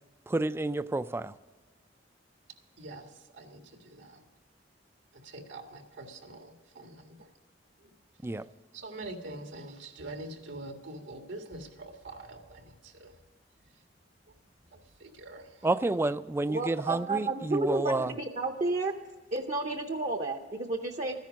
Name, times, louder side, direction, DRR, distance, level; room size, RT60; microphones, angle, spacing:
voice 1, 0.3-1.3 8.2-8.4 15.6-18.1, right 2 dB, 15° right, 15 dB, 0.3 m, -29 dB
voice 2, 2.8-4.2 5.1-7.3 8.7-13.2 13.7-13.8 14.3-14.4 14.7-15.7, right 2 dB, 85° right, 4 dB, 1.7 m, -45 dB
voice 3, 16.5-18.9 19.3-21.2, right 2 dB, 40° right, 5 dB, 0.7 m, -31 dB
13.5 x 10.5 x 6.2 m, 1.3 s
head